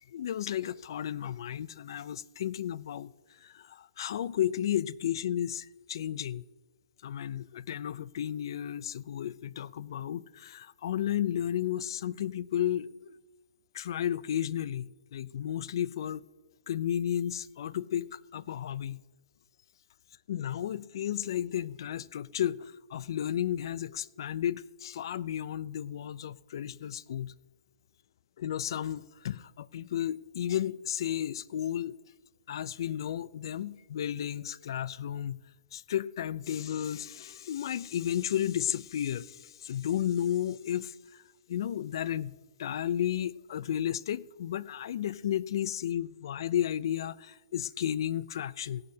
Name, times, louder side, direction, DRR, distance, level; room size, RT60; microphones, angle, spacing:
voice 1, 0.1-3.1 3.4-6.4 7.0-13.1 13.7-16.2 16.7-19.0 20.3-27.3 28.4-32.0 32.5-35.4 35.7-40.9 41.5-42.3 42.6-48.8, left 10 dB, 65° left, 0.4 m, -33 dB
17.0 x 11.5 x 2.8 m
hypercardioid pair, 155°, 3 cm